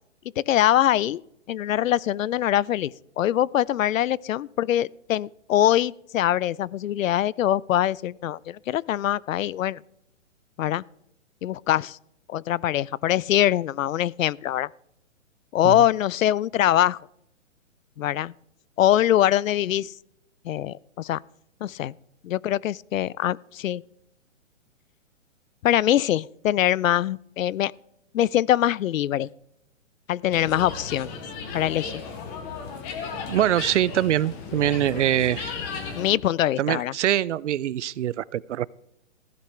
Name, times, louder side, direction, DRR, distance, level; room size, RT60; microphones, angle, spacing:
voice 1, 0.4-1.2 1.5-9.8 10.6-10.8 11.4-12.0 12.3-14.7 15.5-17.0 18.0-18.3 18.8-19.9 20.4-21.2 21.6-21.9 22.2-23.8 25.6-27.7 28.1-29.3 30.1-31.1 31.5-32.0 35.9-36.9, left 12 dB, 85° left, 0.5 m, -23 dB
sound 1, 30.3-36.1, left 5 dB, 10° left, 0.5 m, -35 dB
voice 2, 33.3-35.5 36.6-38.7, right 11 dB, 65° right, 0.5 m, -24 dB
15.5 x 11.5 x 3.3 m
hypercardioid pair, 155°, 39 cm